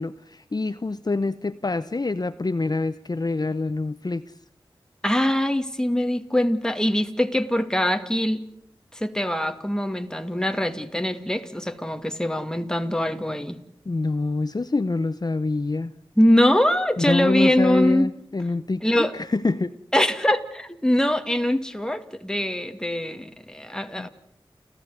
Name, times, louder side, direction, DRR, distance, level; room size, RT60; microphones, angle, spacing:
voice 1, 0.0-4.2 13.9-15.9 17.0-19.7 24.0-24.1, left 3 dB, 45° left, 12 dB, 0.9 m, -26 dB
voice 2, 5.0-8.4 8.9-13.6 16.2-18.1 18.8-19.1 19.9-24.1, left 1 dB, 5° left, 7 dB, 2.3 m, -23 dB
30.0 x 14.5 x 9.7 m, 0.73 s
wide cardioid pair, 55°, 10 cm